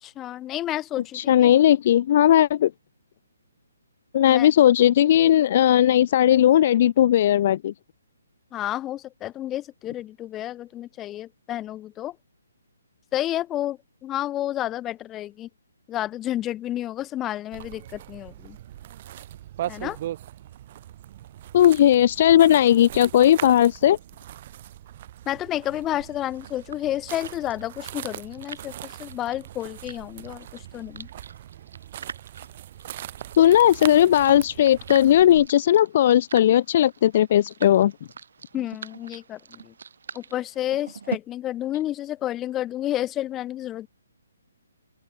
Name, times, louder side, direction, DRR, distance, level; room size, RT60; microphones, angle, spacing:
voice 1, 0.0-1.5 4.3-4.5 8.5-12.2 13.1-15.5 15.9-18.6 19.7-20.0 25.3-31.1 38.5-39.7 40.1-43.9, left 13 dB, 15° left, 1.7 m, -30 dB
voice 2, 1.1-2.7 4.1-7.7 21.5-24.0 33.4-37.9, left 11 dB, 40° left, 0.5 m, -17 dB
sound 1, 17.5-35.5, right 13 dB, 35° right, 1.6 m, -40 dB
sound 2, 25.9-41.2, right 6 dB, 55° right, 6.5 m, -43 dB
open air
figure-of-eight pair, 135°, 0 cm